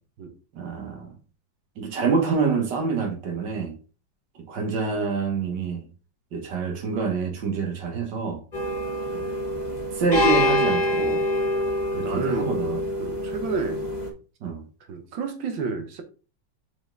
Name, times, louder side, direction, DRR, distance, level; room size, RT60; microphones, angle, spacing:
voice 1, 0.6-1.1 1.8-3.7 4.5-5.8 6.3-8.4 9.1-9.3 10.0-11.2 11.9-12.8 14.4-14.6, right 5 dB, 70° right, 2.0 m, -26 dB
sound 1, 8.5-14.1, left 1 dB, 25° left, 1.3 m, -25 dB
voice 2, 12.0-12.5 13.0-13.9 14.9-16.0, right 5 dB, 85° right, 1.8 m, -30 dB
5.7 x 4.5 x 3.8 m
omnidirectional pair, 2.0 m